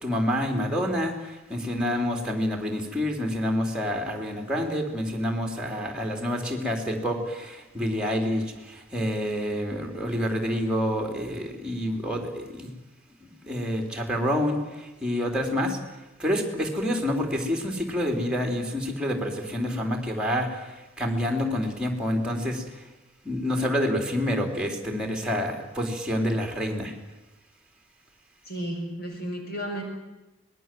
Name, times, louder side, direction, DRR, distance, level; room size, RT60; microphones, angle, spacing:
voice 1, 0.0-12.7 13.2-15.8 16.2-20.7 21.0-22.6 23.2-26.9, equal, 5° right, 2 dB, 3.7 m, -28 dB
voice 2, 28.4-29.8, right 1 dB, 50° left, 2 dB, 5.4 m, -33 dB
25.0 x 20.0 x 7.7 m, 1.1 s
head